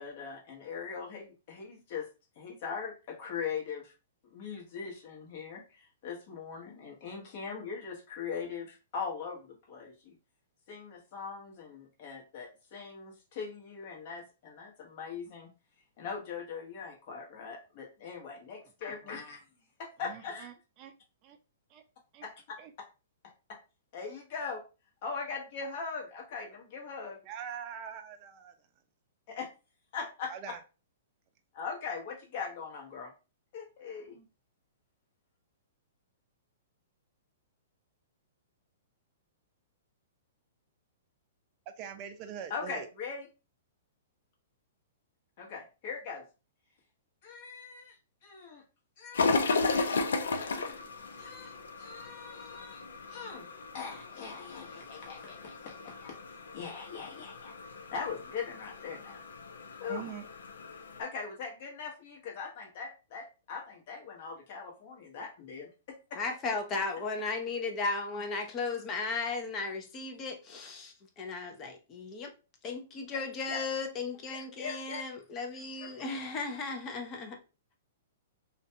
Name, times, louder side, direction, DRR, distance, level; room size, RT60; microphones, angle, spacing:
voice 1, 0.0-2.1 2.4-3.9 4.3-10.2 10.7-15.5 16.0-19.4 19.8-20.5 22.2-22.6 23.5-23.6 23.9-24.6 25.0-27.2 29.3-29.5 29.9-30.3 31.5-33.1 33.5-34.2 42.5-43.3 45.4-46.2 47.2-48.0 48.2-48.6 49.0-50.0 50.3-50.8 51.2-51.5 51.8-52.8 53.1-53.5 53.7-56.2 56.5-57.5 57.9-59.2 59.8-60.1 61.0-66.2 68.6-68.8 73.5-73.6 74.6-75.0 75.8-75.9, left 5 dB, 50° left, 1.0 m, -41 dB
voice 2, 20.0-20.9 21.2-21.4 21.7-21.8 22.1-22.3 22.6-22.7 27.2-28.5 30.3-30.6 41.8-42.9 59.9-60.3, right 8 dB, 35° right, 0.5 m, -43 dB
sound 1, 49.1-61.0, left 4 dB, 85° left, 0.4 m, -35 dB
voice 3, 66.2-72.3 72.6-77.4, left 3 dB, 25° left, 0.5 m, -35 dB
2.5 x 2.2 x 2.7 m
hypercardioid pair, 145°, 0 cm